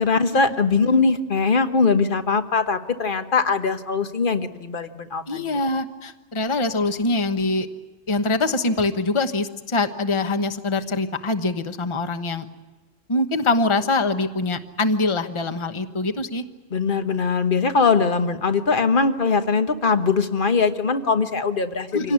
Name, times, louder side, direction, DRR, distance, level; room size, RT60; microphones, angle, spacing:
voice 1, 0.0-5.4 16.7-22.1, left 4 dB, 45° left, 8 dB, 1.4 m, -21 dB
voice 2, 5.3-7.7 8.1-12.5 13.1-16.4 21.9-22.1, left 2 dB, 25° left, 8 dB, 1.1 m, -23 dB
25.5 x 18.0 x 9.6 m, 1.3 s
omnidirectional pair, 1.3 m